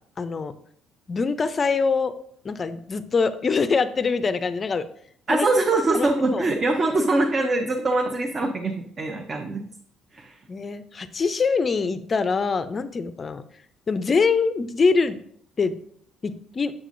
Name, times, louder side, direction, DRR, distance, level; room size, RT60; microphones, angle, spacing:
voice 1, 0.2-0.5 1.1-2.1 2.4-4.8 5.3-5.5 5.9-6.5 7.8-7.9 10.5-13.4 13.9-15.2 15.6-15.8 16.2-16.7, left 4 dB, 30° left, 12 dB, 0.4 m, -24 dB
voice 2, 5.3-9.6 10.1-10.3, right 2 dB, 30° right, 3 dB, 0.6 m, -23 dB
7.2 x 6.6 x 2.5 m, 0.64 s
cardioid pair, 120°, 0 cm